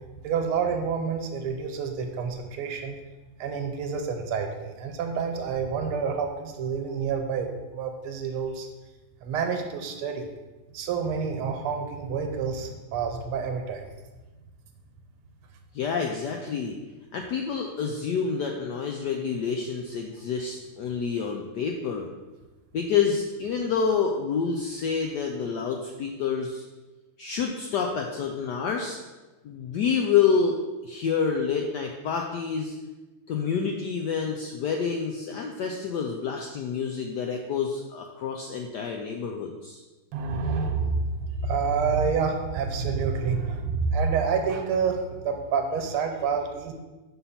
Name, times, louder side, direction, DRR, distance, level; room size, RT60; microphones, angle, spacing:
voice 1, 0.2-2.9 3.4-8.7 9.2-10.2 10.7-13.9 40.1-46.7, right 5 dB, 80° right, 4 dB, 1.7 m, -28 dB
voice 2, 15.7-16.8 17.1-22.1 22.7-26.7 27.2-29.0 29.4-32.7 33.3-39.8, left 6 dB, 80° left, 2 dB, 0.9 m, -28 dB
5.7 x 4.2 x 5.6 m, 1.2 s
omnidirectional pair, 2.4 m